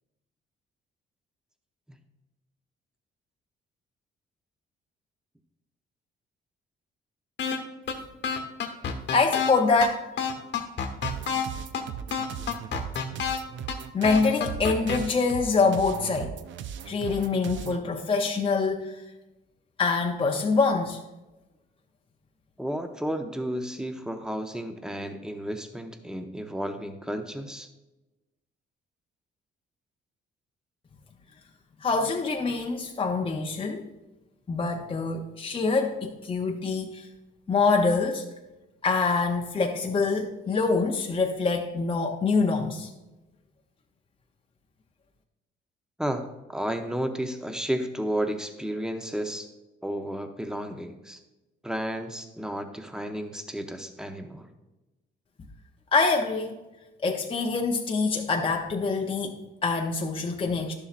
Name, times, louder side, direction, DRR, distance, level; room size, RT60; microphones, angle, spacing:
sound 1, 7.4-7.6 7.9-8.0 8.2-9.5 9.8-9.9 10.2-11.4 11.7-11.8 12.1-13.4 13.7-13.8 14.0-15.0, left 7 dB, 65° left, 1.2 m, -28 dB
voice 1, 9.1-10.1 13.9-16.4 16.9-19.0 19.8-21.0 31.8-33.9 34.5-37.1 37.5-38.2 38.8-42.9 55.9-56.6 57.0-60.7, left 4 dB, 25° left, 1 dB, 0.7 m, -25 dB
sound 2, 11.0-17.8, right 9 dB, 70° right, 0.5 m, -38 dB
voice 2, 22.6-27.7 46.0-49.5 49.8-51.2 51.6-54.5, right 1 dB, 5° right, 7 dB, 0.8 m, -32 dB
11.0 x 7.0 x 2.5 m, 1.0 s
cardioid pair, 90°, 20 cm